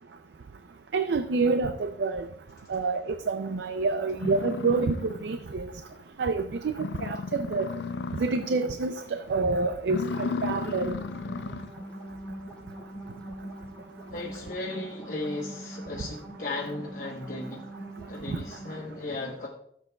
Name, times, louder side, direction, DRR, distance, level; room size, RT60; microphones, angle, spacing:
voice 1, 0.9-2.3 2.7-5.7 6.2-7.7 8.1-11.0 18.3-18.4, right 4 dB, 80° right, 9 dB, 0.5 m, -28 dB
sound 1, 3.7-3.8 4.1-5.5 5.9-6.0 6.4-6.5 6.7-8.6 9.0-9.3 9.8-11.8, left 4 dB, 75° left, 0.4 m, -34 dB
sound 2, 10.9-18.8, right 1 dB, 5° left, 2.8 m, -43 dB
voice 2, 14.1-17.7 18.1-19.5, left 2 dB, 50° left, -3 dB, 1.1 m, -36 dB
14.5 x 7.5 x 2.3 m, 0.71 s
head